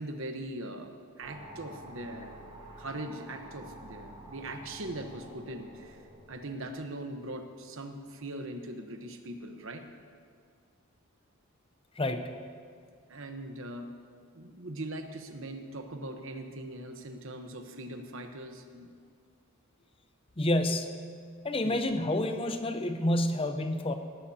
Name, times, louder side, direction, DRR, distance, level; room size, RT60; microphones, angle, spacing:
voice 1, 0.0-2.4 2.8-9.8 13.1-13.9 14.3-18.9 21.6-21.8, right 1 dB, 60° right, 5 dB, 1.1 m, -41 dB
sound 1, 1.2-7.6, right 1 dB, 25° right, 2.2 m, -49 dB
voice 2, 12.0-12.3 20.4-21.0 21.4-23.9, left 1 dB, 25° left, 7 dB, 0.7 m, -29 dB
17.5 x 15.5 x 2.9 m, 2.1 s
head